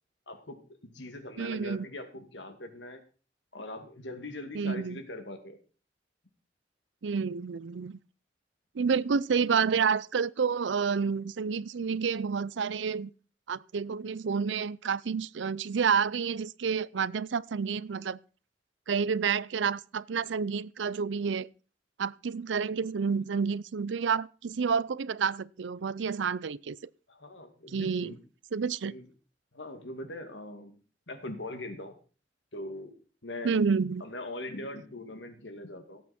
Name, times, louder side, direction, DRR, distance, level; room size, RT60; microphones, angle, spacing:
voice 1, 0.3-3.0 3.5-5.6 27.1-28.2 28.8-29.0 29.5-30.8 31.1-31.9 32.5-32.9 33.2-33.6 34.0-36.0, left 1 dB, 80° left, 2.4 m, -41 dB
voice 2, 1.4-1.9 4.5-5.0 7.0-8.0 8.7-13.1 13.5-18.2 18.9-21.5 22.0-26.8 27.7-28.1 28.5-28.9 33.4-34.0, right 6 dB, 85° right, 0.5 m, -29 dB
17.5 x 8.5 x 4.4 m
head